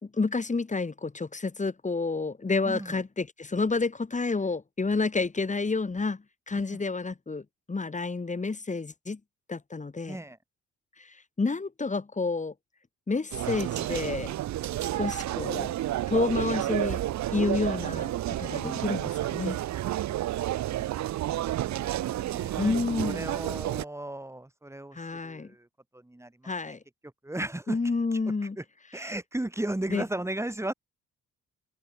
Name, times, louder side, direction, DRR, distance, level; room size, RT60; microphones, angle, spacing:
voice 1, 0.0-9.2 9.5-10.2 11.0-12.5 13.1-14.3 14.9-15.7 16.1-17.0 17.3-19.6 22.6-23.3 24.9-25.5 26.4-26.8 27.7-28.6 29.9-30.0, left 3 dB, 25° left, 3.8 m, -30 dB
voice 2, 2.6-3.0 6.7-6.9 10.1-10.4 18.6-18.9 21.1-25.7 25.9-26.5 27.2-27.8 28.1-28.2 28.6-28.7 28.9-30.7, right 1 dB, 10° right, 5.7 m, -36 dB
sound 1, 13.3-23.8, right 14 dB, 65° right, 0.8 m, -30 dB
cardioid pair, 90°, 30 cm